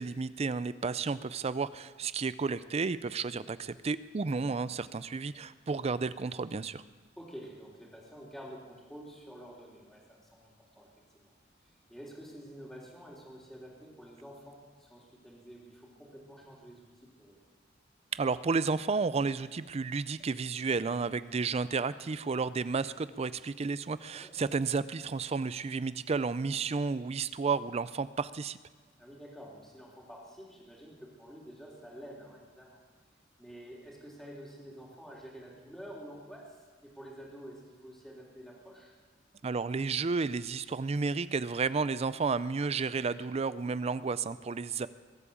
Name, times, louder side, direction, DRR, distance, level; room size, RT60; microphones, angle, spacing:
voice 1, 0.0-6.8 18.1-28.6 39.4-44.9, right 4 dB, 35° right, 16 dB, 0.4 m, -32 dB
voice 2, 7.2-10.9 11.1-11.3 11.6-17.4 24.1-24.4 29.0-32.8 33.4-38.9 44.5-44.6, equal, ahead, -4 dB, 3.5 m, -49 dB
22.0 x 8.6 x 7.1 m, 1.4 s
head